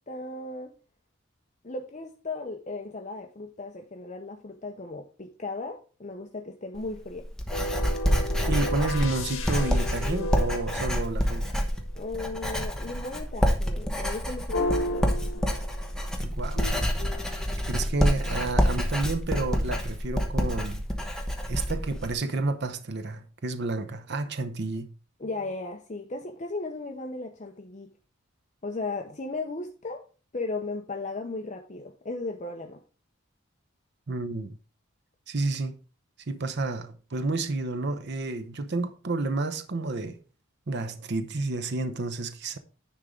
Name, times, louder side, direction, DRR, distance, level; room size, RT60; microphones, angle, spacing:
voice 1, 0.1-0.7 1.6-7.3 11.9-15.1 25.2-27.9 28.6-30.0 30.3-32.8, left 3 dB, 35° left, 0.7 m, -36 dB
Writing, 6.8-22.1, equal, 5° left, 1.0 m, -27 dB
sound 1, 7.5-11.7 14.5-16.0 16.5-18.3, left 1 dB, 80° left, 1.7 m, -34 dB
voice 2, 8.5-11.5 16.2-16.7 17.7-20.8 21.5-24.9 34.1-34.5 35.3-35.8 36.3-40.2 40.7-42.6, right 3 dB, 55° right, 0.7 m, -30 dB
10.0 x 3.6 x 5.0 m
head